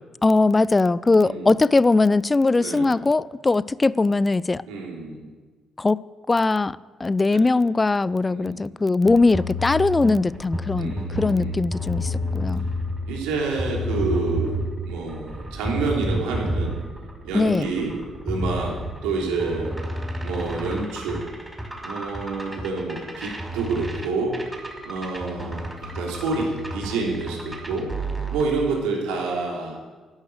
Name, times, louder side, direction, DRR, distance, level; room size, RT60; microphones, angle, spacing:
voice 1, 0.2-4.6 5.8-6.0 6.3-12.6 17.3-17.7, left 3 dB, 25° left, 0.5 m, -20 dB
voice 2, 1.2-1.5 2.6-2.9 4.7-5.3 7.3-7.4 8.3-8.6 10.8-11.5 13.1-14.6 14.9-16.7 17.2-17.9 18.3-18.8 19.0-19.7 20.2-21.3 21.8-24.4 24.8-27.9 28.3-29.8, right 3 dB, 70° right, 3.5 m, -28 dB
sound 1, 9.0-28.4, equal, 10° right, 5.1 m, -31 dB
13.0 x 11.0 x 8.2 m
figure-of-eight pair, 45°, 0 cm